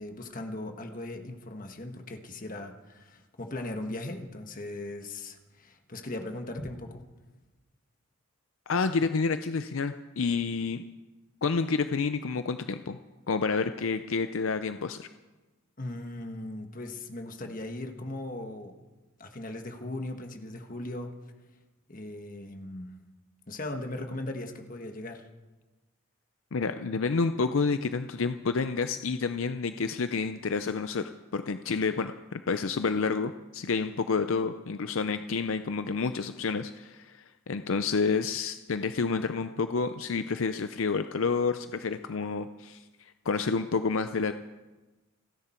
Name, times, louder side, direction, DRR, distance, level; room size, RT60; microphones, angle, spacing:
voice 1, 0.0-7.0 15.8-18.7 19.2-21.1 21.9-22.9 23.5-25.2, left 1 dB, 40° left, 5 dB, 1.5 m, -38 dB
voice 2, 8.7-10.8 11.4-13.0 13.3-15.1 26.5-44.3, left 4 dB, 70° left, 10 dB, 0.5 m, -29 dB
29.0 x 10.5 x 4.4 m, 1.2 s
head